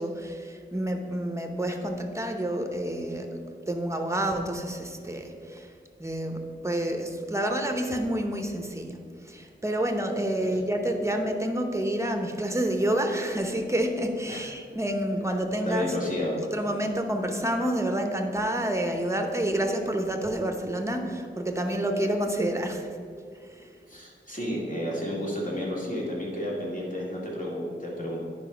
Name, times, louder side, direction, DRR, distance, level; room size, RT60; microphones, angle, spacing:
voice 1, 0.0-3.4 3.7-5.7 6.0-9.0 9.2-15.9 16.5-22.9 23.5-23.7, right 1 dB, 15° right, 4 dB, 0.9 m, -28 dB
voice 2, 15.7-16.4 23.9-28.2, equal, 40° left, -4 dB, 2.3 m, -31 dB
9.8 x 5.2 x 5.1 m, 2.3 s
wide cardioid pair, 65°, 21 cm